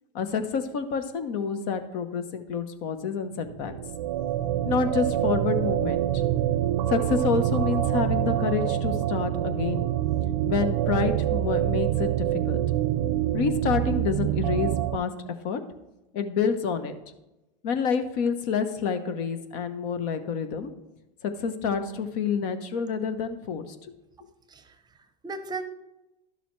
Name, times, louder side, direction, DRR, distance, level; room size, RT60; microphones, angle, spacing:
voice 1, 0.1-3.7 4.6-6.2 6.9-9.9 10.5-12.6 13.3-15.1 15.4-15.6 16.1-16.9 17.6-20.7 21.2-23.7, left 6 dB, 60° left, 9 dB, 1.0 m, -28 dB
sound 1, 3.4-15.0, right 12 dB, 75° right, 0.6 m, -26 dB
voice 2, 24.5-25.6, right 3 dB, 20° right, 10 dB, 0.7 m, -37 dB
11.5 x 6.9 x 3.2 m, 0.98 s
hypercardioid pair, 110°, 21 cm